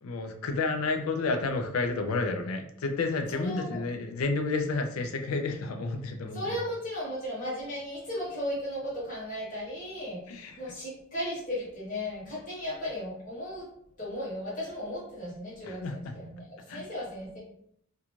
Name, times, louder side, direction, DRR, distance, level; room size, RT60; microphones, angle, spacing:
voice 1, 0.0-6.6 10.3-10.6 15.6-16.1 16.7-16.9, left 3 dB, 80° left, 5 dB, 0.4 m, -31 dB
voice 2, 3.3-3.8 6.3-13.7 14.0-17.4, left 1 dB, 40° left, -8 dB, 1.1 m, -36 dB
2.5 x 2.2 x 2.9 m, 0.70 s
head